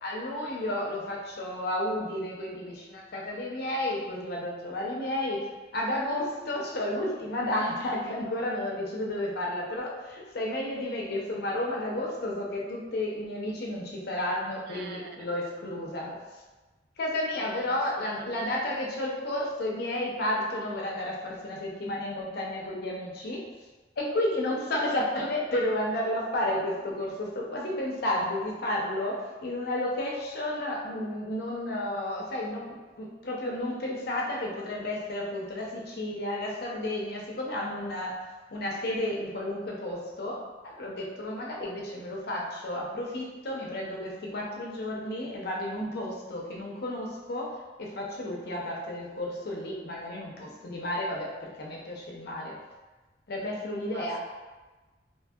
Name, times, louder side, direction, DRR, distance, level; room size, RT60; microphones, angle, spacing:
voice 1, 0.0-5.5 5.7-16.2 17.0-23.4 24.0-38.2 38.5-47.5 47.8-52.6 53.3-54.2, left 1 dB, 60° left, -2 dB, 0.6 m, -32 dB
voice 2, 14.7-15.3 17.4-18.5 53.9-54.2, right 3 dB, 60° right, 4 dB, 0.3 m, -46 dB
2.8 x 2.6 x 2.3 m, 1.2 s
head